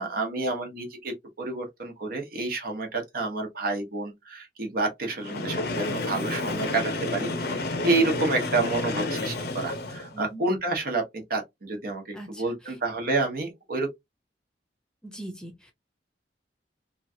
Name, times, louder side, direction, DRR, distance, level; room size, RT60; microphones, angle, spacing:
voice 1, 0.0-11.0 11.3-13.9, right 3 dB, 55° right, 1.0 m, -29 dB
Train, 5.2-10.2, left 2 dB, 60° left, 0.6 m, -30 dB
voice 2, 10.1-10.4 12.1-12.8 15.0-15.7, right 1 dB, 5° left, 0.6 m, -42 dB
3.0 x 2.4 x 2.7 m
head